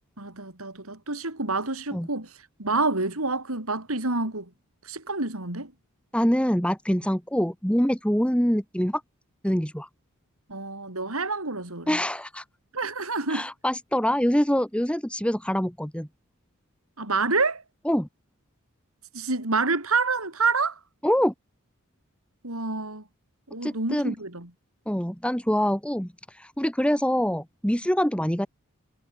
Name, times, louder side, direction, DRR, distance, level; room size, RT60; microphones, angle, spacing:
voice 1, 0.2-4.5 4.8-5.7 10.5-12.0 12.7-13.4 17.0-17.6 19.1-20.8 22.4-23.0 23.5-24.5, right 3 dB, 70° right, 5.2 m, -28 dB
voice 2, 6.1-9.0 9.4-9.9 11.9-12.4 13.3-16.1 17.9-18.1 21.0-21.3 23.6-24.1 24.9-28.5, equal, 5° left, 3.0 m, -25 dB
head